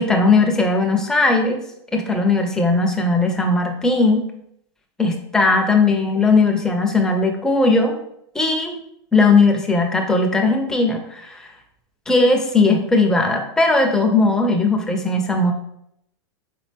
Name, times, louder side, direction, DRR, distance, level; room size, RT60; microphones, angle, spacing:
voice 1, 0.0-1.6 1.9-4.2 5.0-8.0 8.3-8.8 9.1-11.5 12.1-15.5, left 3 dB, 5° left, 2 dB, 0.5 m, -18 dB
4.2 x 3.7 x 3.3 m, 0.75 s
hypercardioid pair, 145°, 15 cm